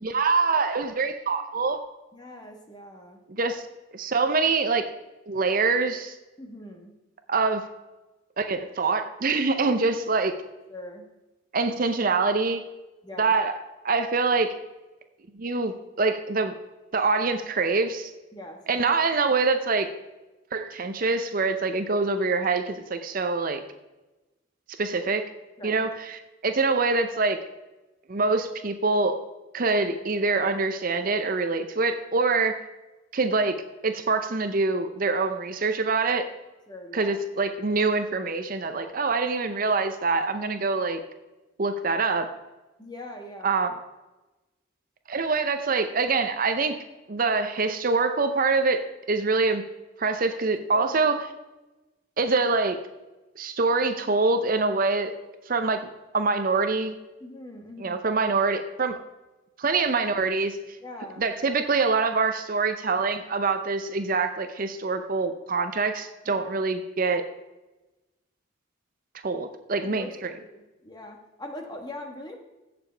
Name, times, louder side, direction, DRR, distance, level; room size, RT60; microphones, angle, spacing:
voice 1, 0.0-1.9 3.3-3.6 3.9-4.9 5.3-6.1 7.3-7.7 8.4-10.4 11.5-12.6 13.2-13.6 13.8-14.6 15.4-16.5 16.9-18.1 18.7-19.9 20.5-23.6 24.8-25.3 25.6-27.4 28.1-29.2 29.5-32.6 33.1-36.3 36.9-41.0 41.6-42.3 43.4-43.7 45.1-46.8 47.1-48.8 49.1-49.6 50.0-51.2 52.2-52.8 53.4-55.1 55.5-55.9 56.1-57.0 57.8-59.0 59.6-60.6 61.2-67.2 69.2-70.3, right 4 dB, 45° right, 8 dB, 0.6 m, -25 dB
voice 2, 2.1-3.2 6.4-6.9 10.7-11.0 13.0-13.3 18.3-18.8 25.6-25.9 36.7-37.2 42.8-43.5 50.7-51.0 57.2-58.0 60.8-61.2 66.2-66.5 69.8-70.1 70.4-72.4, left 1 dB, 20° left, 3 dB, 1.2 m, -41 dB
16.0 x 6.8 x 3.3 m, 1.1 s
head